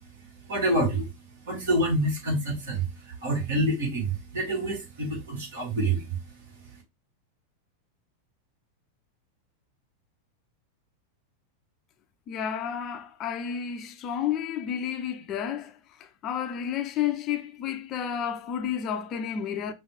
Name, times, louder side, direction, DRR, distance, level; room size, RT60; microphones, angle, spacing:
voice 1, 0.5-1.1 1.5-6.1, right 1 dB, 60° right, 2.4 m, -27 dB
voice 2, 12.3-15.7 16.0-19.7, left 9 dB, 35° left, 0.6 m, -31 dB
5.5 x 2.7 x 3.3 m
figure-of-eight pair, 90°, 0 cm